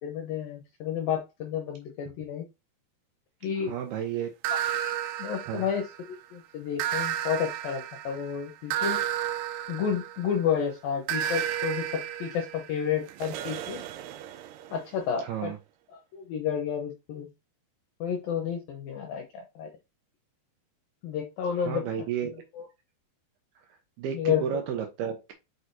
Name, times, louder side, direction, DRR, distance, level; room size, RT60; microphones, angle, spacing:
voice 1, 0.0-2.5 3.4-3.7 4.5-9.0 9.7-11.9 12.2-13.8 14.7-15.5 15.9-17.3 18.0-19.7 21.0-21.8 22.5-22.7 24.1-24.4, left 8 dB, 75° left, 2 dB, 2.2 m, -31 dB
voice 2, 3.6-4.3 5.5-5.7 15.2-15.6 21.6-22.3 24.0-25.3, right 8 dB, 75° right, 5 dB, 2.5 m, -32 dB
sound 1, 4.4-6.2 6.8-10.5 11.1-14.8, right 10 dB, 90° right, 2.2 m, -32 dB
6.2 x 6.1 x 2.7 m, 0.24 s
omnidirectional pair, 5.3 m